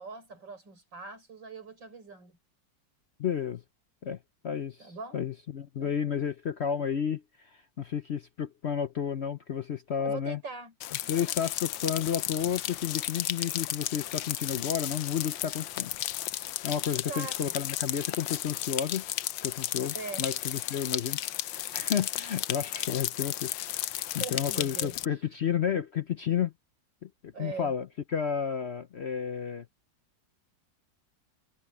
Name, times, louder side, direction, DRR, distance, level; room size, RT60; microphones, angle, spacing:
voice 1, 0.0-2.4 4.8-5.2 5.8-5.9 10.0-10.7 11.0-11.4 11.7-11.9 16.9-17.5 19.9-20.3 24.2-25.2 27.3-27.7, right 4 dB, 75° right, 6.4 m, -42 dB
voice 2, 3.2-3.6 4.0-4.2 4.4-10.4 11.1-15.9 16.6-19.0 19.4-26.5 27.0-27.1 27.4-27.9 28.1-29.7, left 8 dB, 60° left, 0.7 m, -32 dB
sound 1, 10.8-25.1, left 13 dB, 80° left, 1.4 m, -34 dB
omnidirectional pair, 2.0 m